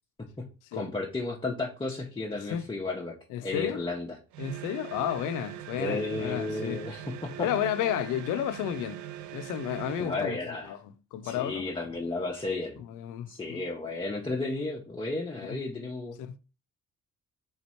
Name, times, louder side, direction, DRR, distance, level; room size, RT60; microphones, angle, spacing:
voice 1, 0.7-3.1 3.4-4.2 5.8-7.5 10.0-10.7 11.2-12.8 13.3-16.2, left 3 dB, 15° left, 0.7 m, -33 dB
voice 2, 3.3-3.8 4.4-6.8 7.4-9.0 9.3-10.4 10.6-11.7 12.8-13.6 15.4-15.6 16.2-16.4, left 10 dB, 90° left, 0.5 m, -32 dB
sound 1, 4.3-10.3, right 11 dB, 70° right, 0.5 m, -41 dB
3.6 x 2.9 x 4.2 m
cardioid pair, 90°, 30 cm